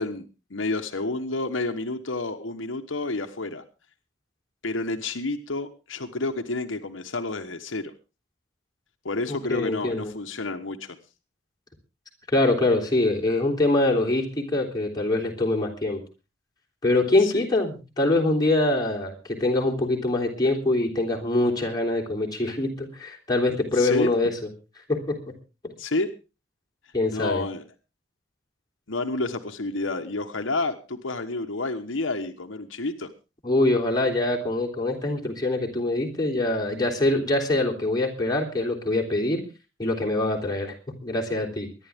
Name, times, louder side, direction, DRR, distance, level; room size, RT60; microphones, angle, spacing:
voice 1, 0.0-3.6 4.6-7.9 9.0-11.0 17.2-17.5 23.7-24.1 25.8-26.1 27.1-27.6 28.9-33.1, left 2 dB, 80° left, 6 dB, 1.2 m, -30 dB
voice 2, 9.3-10.1 12.3-16.0 16.8-24.3 24.9-25.3 25.6-25.7 26.9-27.5 33.4-39.5 39.8-40.7 41.0-41.7, left 2 dB, 20° left, -1 dB, 3.4 m, -24 dB
23.5 x 11.0 x 3.6 m, 0.31 s
head